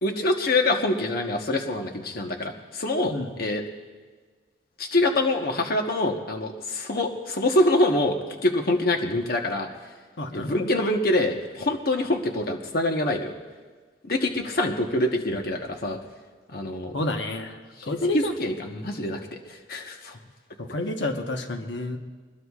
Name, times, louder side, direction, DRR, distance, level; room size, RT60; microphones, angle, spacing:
voice 1, 0.0-3.6 4.8-9.7 10.3-13.3 14.0-16.0 16.5-16.9 17.9-20.2, left 1 dB, 55° left, 3 dB, 1.2 m, -25 dB
voice 2, 10.2-10.7 16.9-18.5 20.6-22.0, left 2 dB, 75° left, 4 dB, 1.2 m, -29 dB
24.5 x 21.0 x 2.4 m, 1.4 s
head